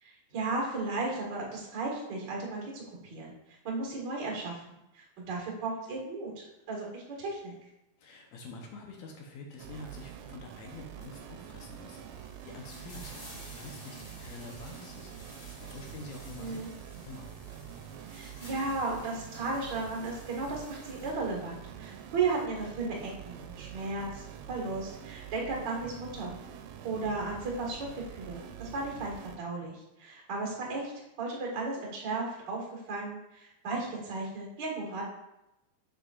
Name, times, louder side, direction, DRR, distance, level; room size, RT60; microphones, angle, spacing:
voice 1, 0.0-7.5 16.4-16.7 18.1-26.3 26.8-30.9 31.2-35.0, right 3 dB, 45° right, -2 dB, 1.5 m, -35 dB
voice 2, 8.0-15.3 15.6-16.8 17.0-17.3, left 3 dB, 75° left, 1 dB, 1.6 m, -47 dB
sound 1, 9.6-29.4, right 9 dB, 80° right, 2.3 m, -46 dB
sound 2, 9.8-10.0 10.5-21.1, left 1 dB, 40° left, 1.8 m, -53 dB
7.3 x 6.8 x 2.4 m, 0.91 s
omnidirectional pair, 4.3 m